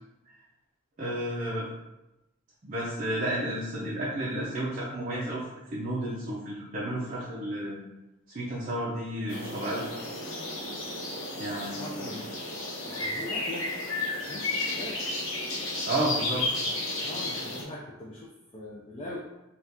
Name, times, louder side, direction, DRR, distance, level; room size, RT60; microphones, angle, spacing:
voice 1, 1.0-1.7 2.6-7.8 8.3-9.9 11.3-12.2 15.9-16.5, right 1 dB, 40° right, -6 dB, 0.5 m, -32 dB
sound 1, 9.3-17.6, left 2 dB, 65° left, 0.8 m, -33 dB
voice 2, 11.8-12.3 12.8-13.7 14.2-15.0 17.0-19.2, left 1 dB, 30° left, -4 dB, 0.4 m, -41 dB
2.8 x 2.4 x 3.4 m, 0.97 s
head